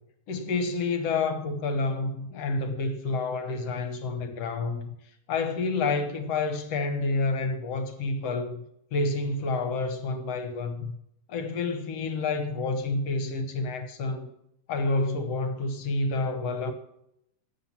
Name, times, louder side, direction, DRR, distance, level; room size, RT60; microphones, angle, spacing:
voice 1, 0.3-4.9 5.3-8.6 8.9-10.9 11.3-14.3 14.7-16.7, left 3 dB, 60° left, 1.9 m, -29 dB
13.0 x 8.0 x 5.9 m
omnidirectional pair, 3.8 m